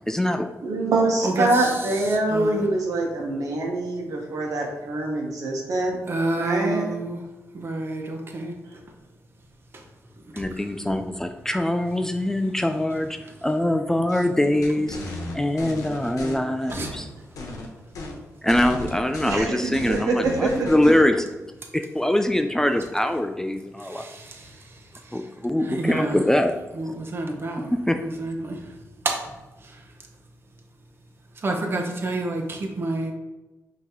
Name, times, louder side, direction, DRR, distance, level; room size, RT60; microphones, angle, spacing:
voice 1, 0.1-0.5 10.3-17.1 18.4-21.3 21.7-24.0 25.1-26.5 27.9-28.0, left 1 dB, 10° left, 6 dB, 0.3 m, -23 dB
voice 2, 0.6-6.0 6.4-6.9 19.2-20.7, right 2 dB, 75° right, 0 dB, 1.1 m, -24 dB
voice 3, 1.2-2.7 6.1-7.2 7.5-8.6 9.7-9.8 10.2-10.7 16.7-16.9 21.6-21.7 23.8-26.2 26.7-27.7 28.0-30.1 31.3-33.1, right 2 dB, 40° right, 2 dB, 0.9 m, -30 dB
sound 1, 14.6-16.3 16.7-17.7 17.9-18.2 18.5-21.0, left 2 dB, 75° left, 0.9 m, -35 dB
5.5 x 3.0 x 3.0 m, 1.1 s
cardioid pair, 70°, 6 cm